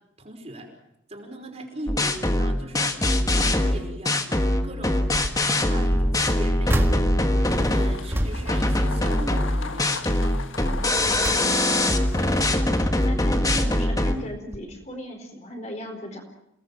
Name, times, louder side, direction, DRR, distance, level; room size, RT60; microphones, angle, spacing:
voice 1, 0.2-0.7 1.1-5.0 5.3-7.0 7.7-9.9 10.2-10.4, right 1 dB, 30° right, 1 dB, 5.3 m, -39 dB
sound 1, 1.9-8.0 8.5-14.2, left 1 dB, 20° left, 1.6 m, -22 dB
sound 2, 4.8-5.4 5.8-9.5 9.9-10.2 10.7-12.0 12.5-13.4 14.1-14.3 14.5-14.6, equal, 10° right, 1.8 m, -31 dB
sound 3, 7.5-12.5, left 4 dB, 80° left, 1.8 m, -39 dB
voice 2, 12.2-16.2, equal, 35° left, 3 dB, 4.5 m, -36 dB
28.5 x 19.0 x 7.5 m, 0.80 s
head